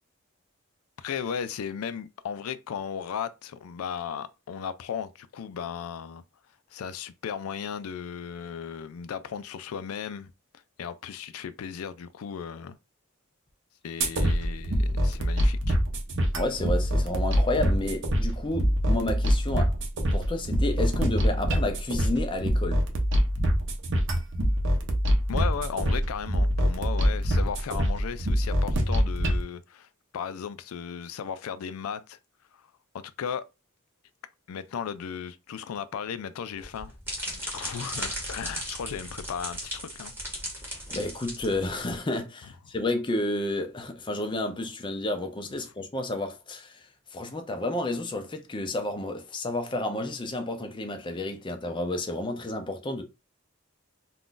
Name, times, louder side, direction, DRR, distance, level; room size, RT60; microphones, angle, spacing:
voice 1, 1.0-6.2 6.7-10.3 10.8-12.8 13.8-15.8 25.3-29.9 30.1-32.2 32.5-32.6 32.9-33.4 34.5-36.9 37.3-40.1, left 7 dB, 90° left, 0.4 m, -36 dB
sound 1, 14.0-29.4, equal, 60° right, 0.6 m, -25 dB
voice 2, 16.3-19.8 20.1-22.8 40.9-46.8 47.1-53.0, left 1 dB, 20° left, 0.5 m, -31 dB
sound 2, 36.6-42.0, equal, 10° right, 0.9 m, -36 dB
2.5 x 2.3 x 3.7 m
head